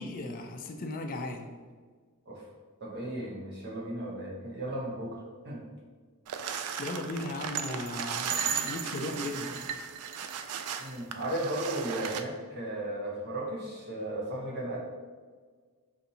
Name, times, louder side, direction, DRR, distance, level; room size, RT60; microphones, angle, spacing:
voice 1, 0.0-1.5 6.5-9.6, left 2 dB, 40° left, 5 dB, 0.4 m, -37 dB
voice 2, 2.8-5.2 5.4-5.6 10.8-14.8, right 1 dB, 50° right, -3 dB, 0.8 m, -35 dB
sound 1, 6.3-12.2, right 7 dB, 80° right, 0.3 m, -35 dB
5.5 x 2.6 x 2.7 m, 1.5 s
head